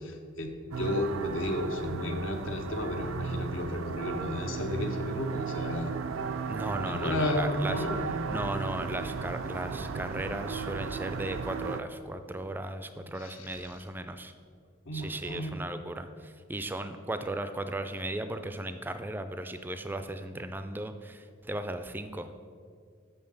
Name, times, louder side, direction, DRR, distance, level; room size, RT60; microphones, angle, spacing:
voice 1, 0.0-5.9 6.5-8.1 13.2-13.7 14.9-15.5, left 1 dB, 80° left, 3 dB, 1.0 m, -33 dB
sound 1, 0.7-11.8, right 5 dB, 80° right, 0.4 m, -35 dB
voice 2, 6.5-7.8 8.3-14.3 14.9-22.3, right 1 dB, 10° right, 9 dB, 0.3 m, -36 dB
6.4 x 5.6 x 6.8 m, 2.1 s
head